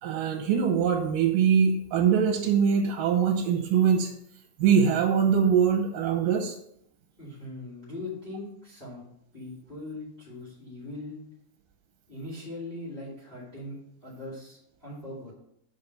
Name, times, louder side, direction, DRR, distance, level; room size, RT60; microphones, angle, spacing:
voice 1, 0.0-4.1 4.6-6.6, right 7 dB, 85° right, 4 dB, 2.5 m, -23 dB
voice 2, 7.1-9.0 9.3-11.2 12.1-13.8 14.0-15.3, left 2 dB, 15° left, -8 dB, 3.3 m, -40 dB
6.3 x 5.6 x 6.5 m, 0.73 s
omnidirectional pair, 3.8 m